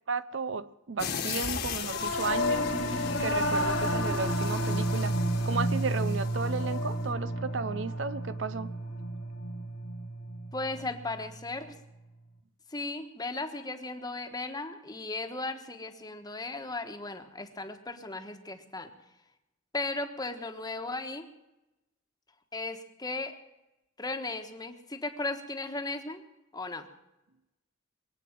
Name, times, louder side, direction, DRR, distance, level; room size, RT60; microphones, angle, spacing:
voice 1, 0.1-5.2 5.5-8.7, right 4 dB, 65° right, 0.6 m, -34 dB
sound 1, 1.0-6.9, left 7 dB, 55° left, 1.5 m, -38 dB
Singing / Musical instrument, 1.8-11.4, equal, 75° left, 2.2 m, -31 dB
voice 2, 10.5-11.8 12.7-18.9 19.7-21.3 22.5-23.4 24.0-26.2 26.5-26.9, left 2 dB, 20° left, 1.3 m, -36 dB
22.5 x 8.5 x 7.4 m
head